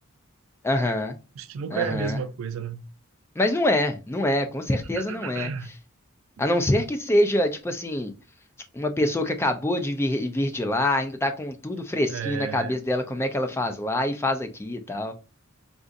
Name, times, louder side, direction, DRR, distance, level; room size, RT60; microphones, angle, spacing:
voice 1, 0.6-1.2 1.7-2.2 3.4-5.5 6.4-8.1 8.7-15.1, left 1 dB, 10° left, 0.3 m, -25 dB
voice 2, 1.4-2.8 5.0-5.7 12.1-12.8, right 6 dB, 70° right, 0.3 m, -32 dB
3.8 x 2.4 x 2.5 m
head